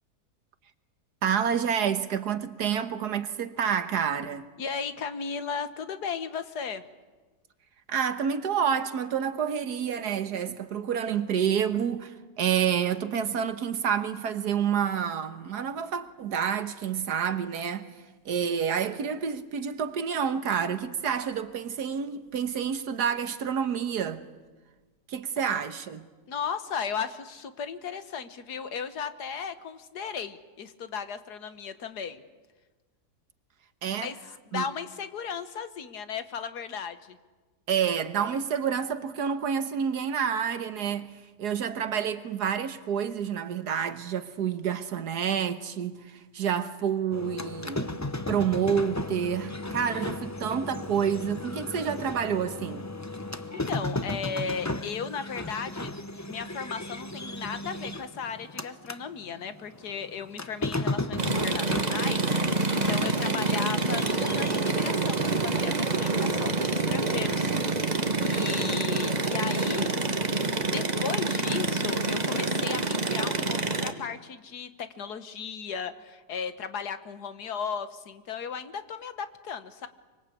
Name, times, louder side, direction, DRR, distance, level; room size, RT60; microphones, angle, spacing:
voice 1, 1.2-4.5 7.9-18.0 18.3-24.2 25.1-26.1 33.8-34.1 34.5-34.7 37.7-52.9, right 8 dB, 80° right, 1.8 m, -28 dB
voice 2, 4.6-6.8 26.3-32.2 33.9-34.2 34.5-37.2 49.5-50.1 53.7-55.9 56.2-67.5 68.2-70.0 70.7-79.9, left 6 dB, 80° left, 1.9 m, -36 dB
sound 1, 47.1-59.0 59.4-64.6, left 2 dB, 20° left, 0.5 m, -35 dB
sound 2, 61.2-73.9, right 3 dB, 25° right, 1.5 m, -27 dB
25.0 x 24.5 x 8.5 m
omnidirectional pair, 1.7 m